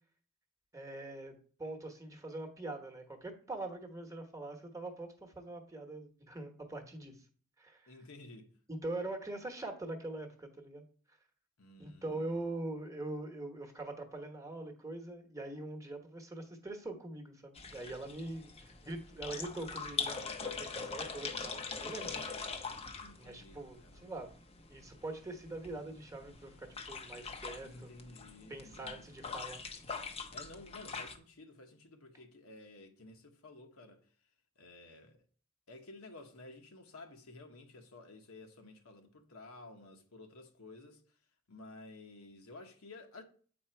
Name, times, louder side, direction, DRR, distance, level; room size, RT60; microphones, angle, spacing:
voice 1, 0.7-1.3 1.6-7.2 7.6-7.9 8.7-10.8 11.8-22.3 23.2-24.3 24.7-27.9 28.5-29.6, right 2 dB, 15° right, 1.1 m, -43 dB
voice 2, 7.9-8.5 11.6-12.5 23.0-24.1 27.6-29.1 30.3-34.0 34.6-35.2 35.7-41.0 41.5-43.2, left 2 dB, 70° left, 1.1 m, -53 dB
sound 1, 17.5-31.2, left 5 dB, 30° left, 0.7 m, -43 dB
8.5 x 4.4 x 4.4 m
head